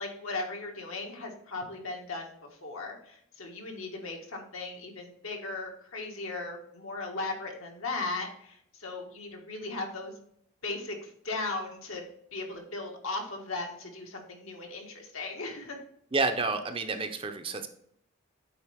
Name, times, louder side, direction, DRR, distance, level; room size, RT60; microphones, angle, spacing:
voice 1, 0.0-2.4 2.6-10.2 10.6-12.0 12.3-15.8, left 3 dB, 85° left, 1 dB, 1.6 m, -37 dB
voice 2, 16.1-17.7, right 3 dB, 25° right, 7 dB, 0.6 m, -29 dB
8.6 x 4.3 x 3.4 m, 0.70 s
head